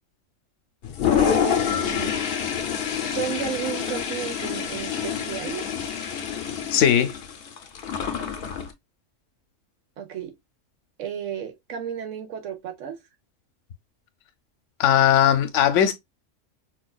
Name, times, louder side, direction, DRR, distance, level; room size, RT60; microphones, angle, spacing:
Toilet flush, 0.8-8.7, left 8 dB, 60° left, 0.8 m, -27 dB
voice 1, 1.2-2.2 3.0-5.7 10.0-10.3 11.0-13.0, right 9 dB, 75° right, 1.1 m, -32 dB
voice 2, 6.7-7.1 14.8-15.9, left 10 dB, 80° left, 1.0 m, -18 dB
4.5 x 2.3 x 2.3 m
omnidirectional pair, 1.3 m